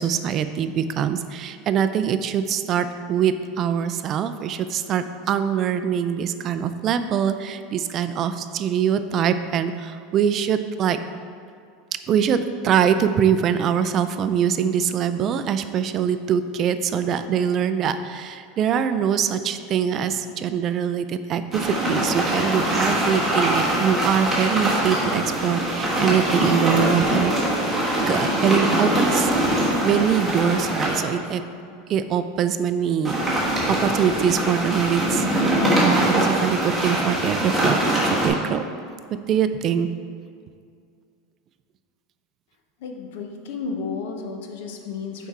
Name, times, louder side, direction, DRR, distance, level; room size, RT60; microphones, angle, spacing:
voice 1, 0.0-11.0 12.1-29.3 29.8-31.4 31.9-35.3 35.8-38.6 39.3-39.9, right 8 dB, 35° right, 10 dB, 0.3 m, -23 dB
sound 1, 21.5-31.0 33.1-38.3, right 1 dB, 5° right, 1.3 m, -23 dB
voice 2, 42.8-45.3, left 5 dB, 75° left, 3 dB, 0.8 m, -32 dB
5.8 x 4.6 x 4.2 m, 2.3 s
supercardioid pair, 150°, 0 cm